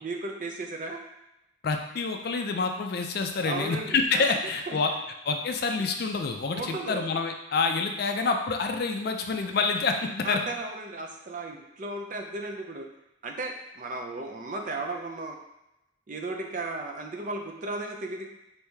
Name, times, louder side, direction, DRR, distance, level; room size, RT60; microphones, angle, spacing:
voice 1, 0.0-1.0 3.4-4.2 4.7-5.0 6.5-7.0 10.2-12.9 13.2-15.4 16.1-18.3, right 2 dB, 40° right, 2 dB, 0.4 m, -35 dB
voice 2, 1.6-4.9 5.3-10.4, left 4 dB, 50° left, 4 dB, 0.4 m, -27 dB
4.6 x 2.7 x 3.4 m, 0.88 s
head